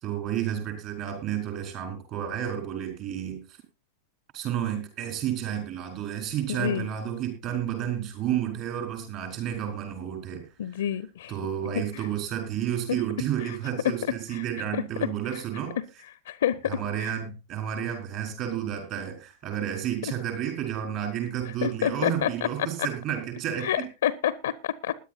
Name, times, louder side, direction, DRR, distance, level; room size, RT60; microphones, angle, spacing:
voice 1, 0.0-3.6 4.3-10.8 11.3-15.7 16.6-23.8, right 10 dB, 45° right, 4 dB, 4.4 m, -31 dB
voice 2, 10.6-11.3 11.8-12.0 12.9-13.0 13.4-13.6 14.3-14.4 15.0-15.1 15.8-15.9 16.3-17.1 21.6-22.7 23.6-24.9, left 10 dB, 60° left, 19 dB, 0.5 m, -28 dB
20.5 x 10.5 x 2.7 m, 0.28 s
figure-of-eight pair, 90°, 0 cm